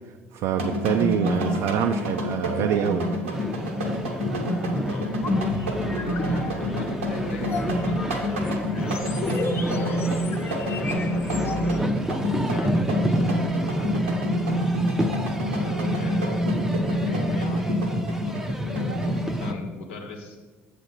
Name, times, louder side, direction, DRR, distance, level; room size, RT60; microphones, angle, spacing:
voice 1, 0.3-3.1, right 8 dB, 60° right, 5 dB, 0.4 m, -25 dB
sound 1, 0.6-19.5, equal, 85° right, 0.9 m, -28 dB
sound 2, 3.3-19.5, equal, 5° right, 0.6 m, -30 dB
voice 2, 4.8-5.2 5.9-9.1 9.7-10.0 10.3-11.8 12.3-14.6 15.4-20.4, left 4 dB, 80° left, 3 dB, 1.0 m, -40 dB
sound 3, 5.0-11.8, left 3 dB, 40° left, 0.8 m, -33 dB
7.6 x 6.7 x 4.0 m, 1.3 s
hypercardioid pair, 60°, 6 cm